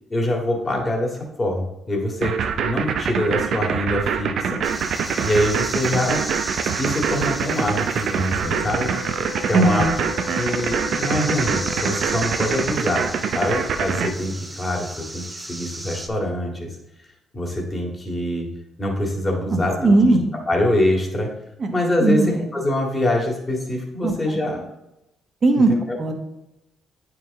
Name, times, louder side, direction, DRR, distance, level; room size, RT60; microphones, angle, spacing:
voice 1, 0.1-4.6 5.2-6.3 6.6-8.9 9.4-9.9 10.4-16.8 17.3-18.5 18.8-20.1 20.5-21.3 21.7-24.6 25.7-26.0, left 1 dB, 25° left, 0 dB, 1.9 m, -24 dB
sound 1, 2.2-14.1, right 7 dB, 70° right, 0.6 m, -24 dB
sound 2, 4.6-16.1, right 1 dB, 15° right, 0.8 m, -34 dB
sound 3, 8.4-12.3, left 5 dB, 80° left, 0.5 m, -35 dB
voice 2, 9.5-9.9 19.5-20.3 21.6-21.7 22.0-22.4 24.0-24.4 25.4-25.7 26.0-26.1, right 2 dB, 45° right, 4 dB, 1.2 m, -18 dB
8.9 x 4.8 x 3.6 m, 0.90 s
cardioid pair, 90°, 0 cm